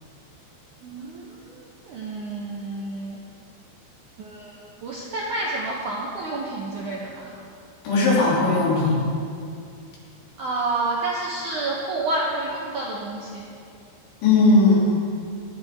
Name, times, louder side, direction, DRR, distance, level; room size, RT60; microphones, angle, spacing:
voice 1, 0.8-3.2 4.2-7.4 10.4-13.5, right 2 dB, 75° right, -4 dB, 1.8 m, -29 dB
voice 2, 7.9-9.0 14.2-14.8, left 3 dB, 85° left, -6 dB, 5.3 m, -17 dB
18.5 x 11.0 x 3.6 m, 2.4 s
omnidirectional pair, 5.2 m